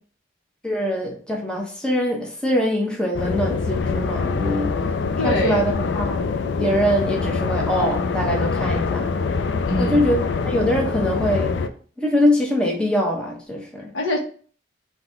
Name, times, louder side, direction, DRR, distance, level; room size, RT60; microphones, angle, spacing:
voice 1, 0.6-4.7 5.2-6.2 6.6-9.1 9.8-11.5 12.0-13.9, equal, 5° left, -1 dB, 0.8 m, -23 dB
sound 1, 3.1-11.7, left 4 dB, 65° left, 0.4 m, -24 dB
voice 2, 5.2-5.6 9.7-10.1 13.9-14.2, left 1 dB, 90° left, 0 dB, 1.3 m, -23 dB
3.9 x 2.8 x 4.4 m, 0.42 s
head